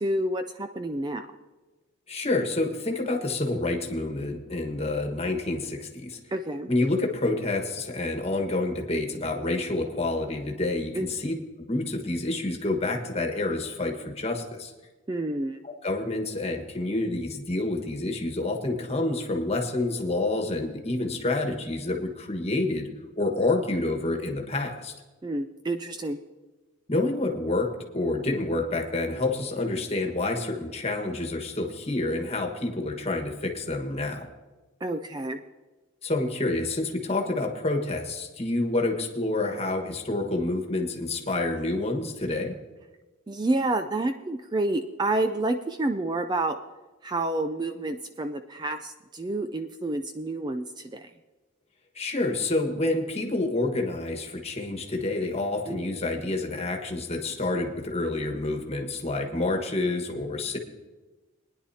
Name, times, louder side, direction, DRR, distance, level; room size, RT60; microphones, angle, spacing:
voice 1, 0.0-1.3 6.3-6.7 10.9-11.1 15.1-15.6 25.2-26.2 34.8-35.4 43.3-46.6 47.0-51.1 55.7-55.8, right 2 dB, 20° right, 8 dB, 0.3 m, -29 dB
voice 2, 2.1-6.2 6.7-11.3 11.7-14.7 15.6-22.9 23.2-24.9 26.9-34.3 36.0-42.5 51.9-60.6, left 2 dB, 30° left, 3 dB, 1.4 m, -28 dB
20.5 x 10.5 x 2.8 m, 1.2 s
head